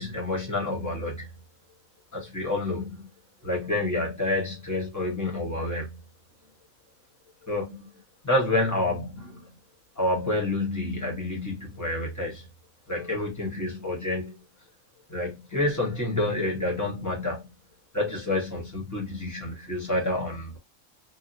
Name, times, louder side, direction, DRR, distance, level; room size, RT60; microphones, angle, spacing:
voice 1, 0.0-1.3 2.1-3.1 3.4-6.0 7.4-7.9 8.2-9.6 10.0-12.5 12.9-14.4 15.1-17.5 17.9-20.6, left 2 dB, 15° left, 1.1 m, -28 dB
2.9 x 2.3 x 2.6 m
omnidirectional pair, 1.4 m